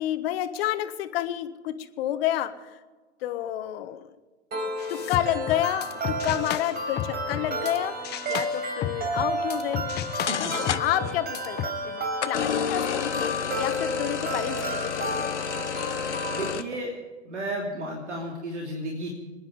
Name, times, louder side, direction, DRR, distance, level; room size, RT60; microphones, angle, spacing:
voice 1, 0.0-2.7 3.2-4.1 4.9-7.9 8.3-9.8 10.4-15.3, left 12 dB, 60° left, 10 dB, 1.5 m, -30 dB
sound 1, 4.5-16.5, right 1 dB, 30° right, 4.5 m, -32 dB
sound 2, 4.8-7.8 8.0-11.7, left 11 dB, 30° left, 0.9 m, -34 dB
sound 3, 9.9-10.0 10.3-11.1 12.2-16.6, left 8 dB, 90° left, 1.0 m, -30 dB
voice 2, 10.3-10.6 16.3-17.0 17.2-19.1, right 1 dB, 90° right, -1 dB, 3.1 m, -33 dB
26.5 x 10.5 x 5.0 m, 1.3 s
hypercardioid pair, 105°, 34 cm